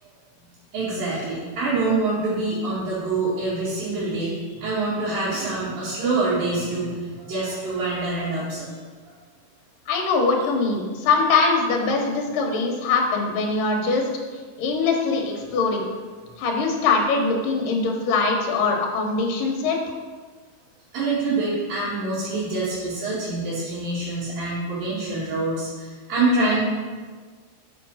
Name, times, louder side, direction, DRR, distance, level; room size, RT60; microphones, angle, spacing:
voice 1, 0.7-8.8 20.9-26.7, right 2 dB, 90° right, -12 dB, 4.0 m, -25 dB
voice 2, 9.9-14.1 14.6-15.9 16.4-19.8, left 4 dB, 75° left, 1 dB, 2.8 m, -22 dB
7.1 x 5.9 x 6.3 m, 1.5 s
omnidirectional pair, 3.9 m